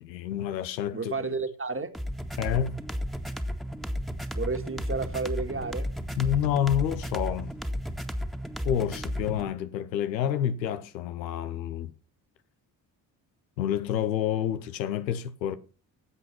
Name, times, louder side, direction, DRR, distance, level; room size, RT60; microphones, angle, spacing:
voice 1, 0.0-1.1 2.4-2.8 6.2-7.5 8.6-11.9 13.6-15.6, left 10 dB, 90° left, 0.9 m, -28 dB
voice 2, 0.9-2.0 4.3-5.9, right 4 dB, 25° right, 2.0 m, -31 dB
sound 1, 1.9-9.5, equal, ahead, 1.9 m, -33 dB
14.0 x 8.2 x 5.9 m
hypercardioid pair, 45°, 50 cm